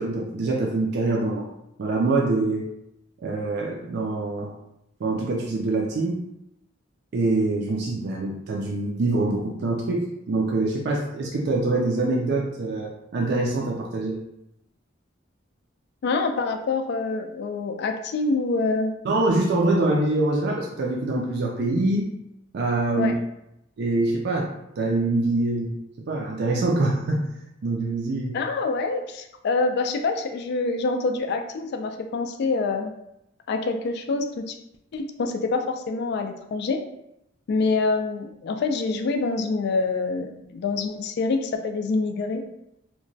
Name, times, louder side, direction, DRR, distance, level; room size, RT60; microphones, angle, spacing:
voice 1, 0.0-1.5 1.8-2.6 3.2-4.5 5.0-6.2 7.1-14.2 19.0-22.1 22.5-23.1 23.8-24.5 24.8-25.8 26.1-27.3 27.6-28.4, right 2 dB, 55° right, -1 dB, 0.4 m, -24 dB
voice 2, 16.0-18.9 22.9-23.1 28.3-32.9 33.5-34.6 34.9-36.8 37.5-42.4, left 3 dB, 55° left, 6 dB, 0.3 m, -26 dB
2.9 x 2.1 x 2.6 m, 0.83 s
head